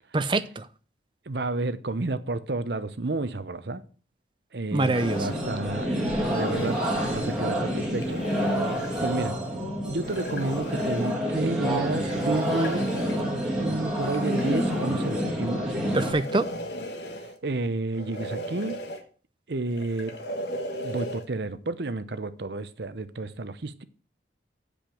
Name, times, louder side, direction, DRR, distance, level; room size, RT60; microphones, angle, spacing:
voice 1, 0.1-0.6 4.7-5.2 15.9-16.5, right 2 dB, 25° right, 0.6 m, -24 dB
voice 2, 1.3-3.8 4.5-6.8 7.1-8.2 9.0-9.4 9.8-12.9 13.6-15.6 17.4-18.8 19.5-20.1 20.8-23.8, right 2 dB, 65° right, 0.8 m, -31 dB
sound 1, 4.8-5.4 6.2-7.4 7.9-9.3 10.0-11.2 11.9-13.3 14.0-15.3 15.9-17.4 17.9-19.0 19.7-21.3, equal, 65° left, 1.4 m, -37 dB
sound 2, 4.9-16.1, equal, 5° right, 2.2 m, -28 dB
8.7 x 5.1 x 7.6 m
head